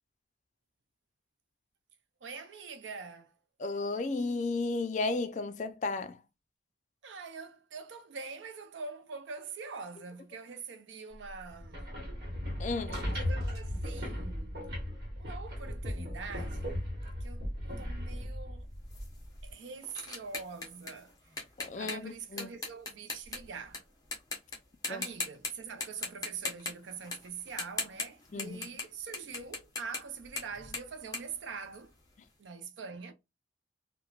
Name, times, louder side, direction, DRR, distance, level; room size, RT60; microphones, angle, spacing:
voice 1, 2.2-3.3 7.0-11.9 13.1-14.6 15.2-16.9 17.2-17.5 17.8-18.7 19.4-21.1 21.8-23.8 24.9-31.9 32.4-33.1, right 5 dB, 85° right, 0.5 m, -44 dB
voice 2, 3.6-6.2 12.6-13.1 21.6-22.5 24.9-25.1 28.3-28.7, left 3 dB, 40° left, 0.3 m, -34 dB
sound 1, 11.5-19.5, equal, 55° right, 1.0 m, -37 dB
sound 2, 18.9-23.8 24.1-24.6 24.8-25.5 25.8-32.1, left 3 dB, 20° left, 0.7 m, -39 dB
3.1 x 2.1 x 2.3 m
head